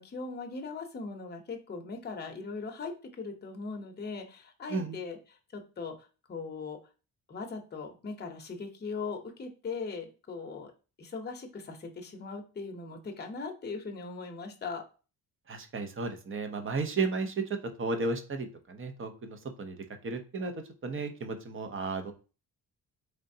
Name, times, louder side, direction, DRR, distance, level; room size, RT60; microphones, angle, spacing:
voice 1, 0.0-5.2 5.5-5.9 6.3-6.8 7.3-10.7 11.0-14.8, left 4 dB, 25° left, 3 dB, 0.7 m, -39 dB
voice 2, 15.5-20.5 20.8-22.1, right 3 dB, 35° right, 5 dB, 0.7 m, -34 dB
3.9 x 3.3 x 2.7 m, 0.34 s
cardioid pair, 120°, 39 cm